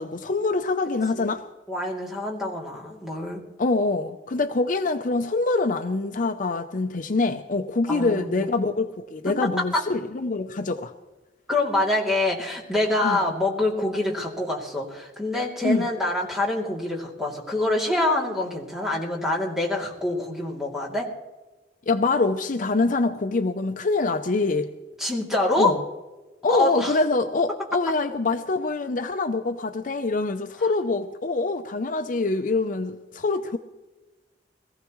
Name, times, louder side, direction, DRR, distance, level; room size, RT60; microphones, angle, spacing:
voice 1, 0.0-1.4 3.6-10.9 13.0-13.2 15.6-15.9 21.9-24.7 25.6-25.8 26.4-33.6, left 3 dB, 50° left, 7 dB, 0.6 m, -25 dB
voice 2, 1.7-3.4 7.9-8.4 9.7-9.8 11.5-21.0 25.0-25.7 26.5-27.0, left 2 dB, 5° right, -3 dB, 2.8 m, -25 dB
22.0 x 15.0 x 3.1 m, 1.2 s
head